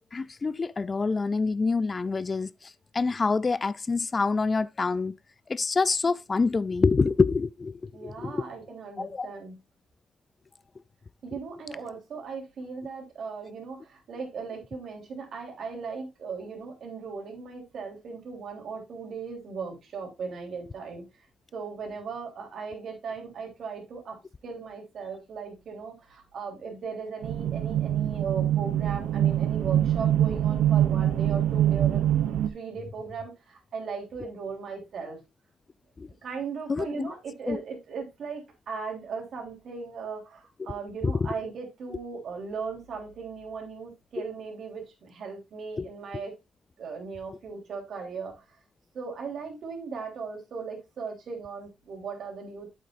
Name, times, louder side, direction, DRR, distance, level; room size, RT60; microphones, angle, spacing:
voice 1, 0.1-5.2 5.5-8.4 9.0-9.3 36.0-36.1 36.7-37.1 37.5-37.6 41.0-41.3 45.8-45.9, left 4 dB, 30° left, 0.3 m, -26 dB
voice 2, 7.9-9.6 11.2-21.3 21.5-32.0 32.5-35.2 36.2-46.3 46.8-48.6 48.9-52.7, right 5 dB, 60° right, 3.4 m, -38 dB
sound 1, 27.2-32.5, right 11 dB, 80° right, 0.8 m, -24 dB
8.2 x 8.0 x 2.5 m
cardioid pair, 90°, 0 cm